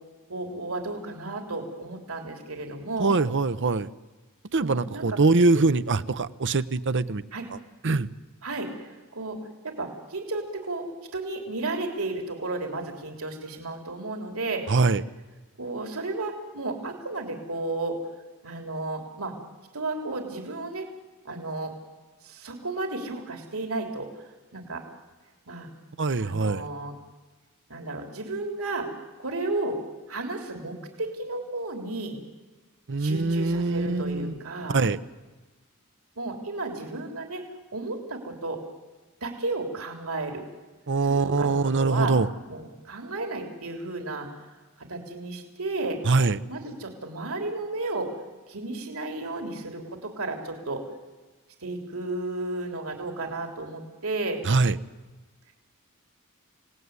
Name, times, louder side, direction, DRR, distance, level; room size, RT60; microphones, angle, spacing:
voice 1, 0.3-3.2 4.6-5.2 5.5-5.7 7.3-7.5 8.4-9.4 9.6-10.9 11.1-14.6 15.6-18.0 18.4-19.3 19.7-20.9 21.2-21.7 22.2-24.2 24.5-24.8 25.5-25.7 26.2-26.9 27.7-28.9 29.2-29.8 30.1-32.2 33.0-34.8 36.2-37.4 37.7-38.6 39.2-40.4 41.0-42.1 42.5-44.3 44.9-46.0 46.5-48.1 48.5-50.8 51.6-54.4, right 2 dB, 70° right, 3 dB, 3.4 m, -33 dB
voice 2, 3.0-3.9 4.5-7.2 7.8-8.1 14.7-15.0 26.0-26.7 32.9-34.3 34.7-35.0 40.9-42.3 46.1-46.4 54.5-54.8, right 3 dB, 55° right, 13 dB, 0.8 m, -23 dB
27.5 x 18.0 x 9.6 m, 1.2 s
head